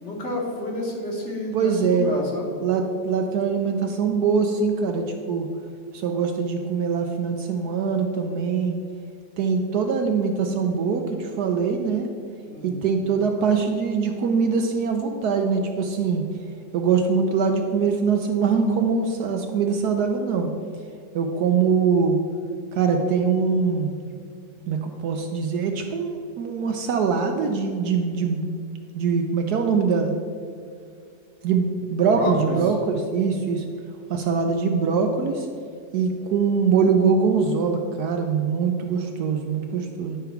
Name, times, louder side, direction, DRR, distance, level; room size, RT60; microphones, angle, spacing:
voice 1, 0.0-2.5 12.5-12.8 32.2-32.6, left 1 dB, 40° left, -2 dB, 1.6 m, -29 dB
voice 2, 1.5-2.1 2.6-5.5 5.9-8.8 9.4-12.1 12.6-16.2 16.7-20.5 21.1-22.2 22.7-23.9 24.7-28.5 28.9-30.1 31.4-33.6 34.1-35.5 35.9-40.2, right 5 dB, 70° right, 4 dB, 1.1 m, -23 dB
10.0 x 3.6 x 5.7 m, 2.3 s
omnidirectional pair, 2.0 m